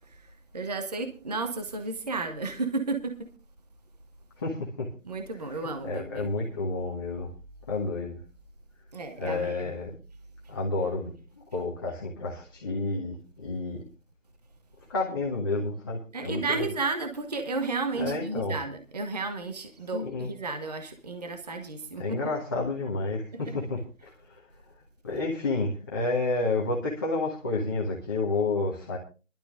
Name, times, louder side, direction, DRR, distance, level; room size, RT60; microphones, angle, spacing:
voice 1, 0.1-3.3 5.0-6.5 8.9-9.7 16.1-22.2 23.3-23.5, right 3 dB, 30° right, 1.1 m, -33 dB
voice 2, 4.4-4.9 5.6-7.3 7.7-8.2 9.2-10.0 10.5-13.8 14.9-16.6 17.9-18.6 19.9-20.3 22.0-24.4 25.0-29.0, left 3 dB, 15° left, 1.4 m, -30 dB
22.5 x 12.0 x 2.5 m
figure-of-eight pair, 165°, 38 cm